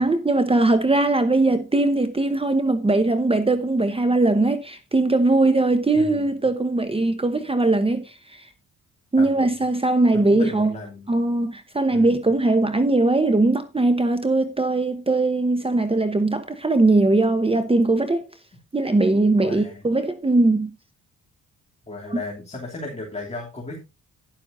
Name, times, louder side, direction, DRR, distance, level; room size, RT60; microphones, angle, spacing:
voice 1, 0.0-8.4 9.1-10.7 11.1-18.2 18.7-20.7 22.1-22.2, right 2 dB, 15° right, 1.0 m, -20 dB
voice 2, 5.9-6.5 9.2-9.6 10.1-11.1 11.9-12.3 19.4-19.8 21.8-23.8, left 2 dB, 20° left, 3.1 m, -35 dB
11.5 x 11.0 x 2.8 m
cardioid pair, 105°, 33 cm